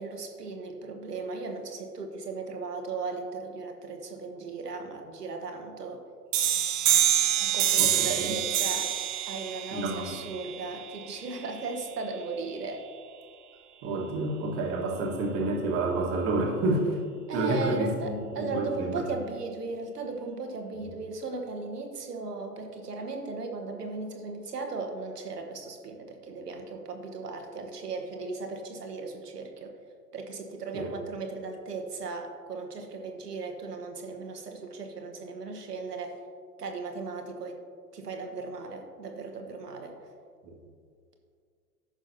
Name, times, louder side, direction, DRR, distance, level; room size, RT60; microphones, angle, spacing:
voice 1, 0.0-6.0 7.4-8.9 9.3-12.8 17.3-29.8 30.1-36.2 36.6-37.6 37.9-39.9, right 4 dB, 70° right, 3 dB, 1.5 m, -37 dB
sound 1, 6.3-11.7, right 10 dB, 50° right, 1.1 m, -27 dB
voice 2, 7.8-8.3 9.7-10.2 13.8-17.0 17.3-19.0 30.7-30.9 40.4-40.5, right 2 dB, 30° right, -1 dB, 1.6 m, -29 dB
14.5 x 6.3 x 2.8 m, 2.1 s
figure-of-eight pair, 105°, 48 cm